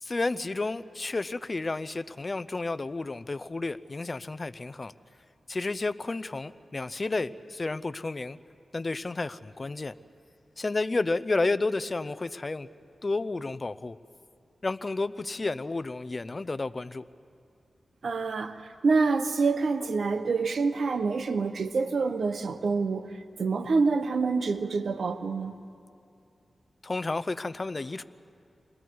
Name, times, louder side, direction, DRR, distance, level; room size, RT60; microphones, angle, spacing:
voice 1, 0.0-4.9 5.5-8.4 8.7-9.9 10.6-12.7 13.0-14.0 14.6-17.0 26.8-28.0, left 3 dB, 40° left, 15 dB, 0.7 m, -31 dB
voice 2, 18.0-18.6 18.8-23.1 23.4-25.5, right 4 dB, 70° right, 9 dB, 1.2 m, -26 dB
29.0 x 22.0 x 4.7 m, 2.5 s
cardioid pair, 55°, 0 cm